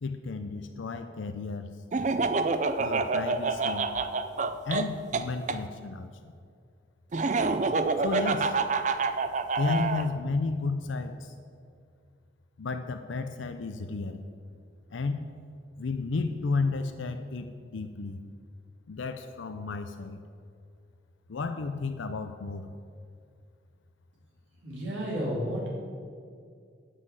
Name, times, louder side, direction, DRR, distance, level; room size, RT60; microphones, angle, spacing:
voice 1, 0.0-1.7 2.8-3.9 4.6-6.1 8.0-8.6 9.6-11.3 12.6-14.2 14.9-15.3 15.8-18.2 18.9-20.2 21.3-22.7, left 4 dB, 80° left, 8 dB, 0.5 m, -32 dB
Laughter, 1.9-5.6 7.1-10.1, right 4 dB, 40° right, 0.4 m, -27 dB
voice 2, 24.6-25.7, equal, 85° right, -4 dB, 2.7 m, -32 dB
9.2 x 6.1 x 7.6 m, 2.2 s
head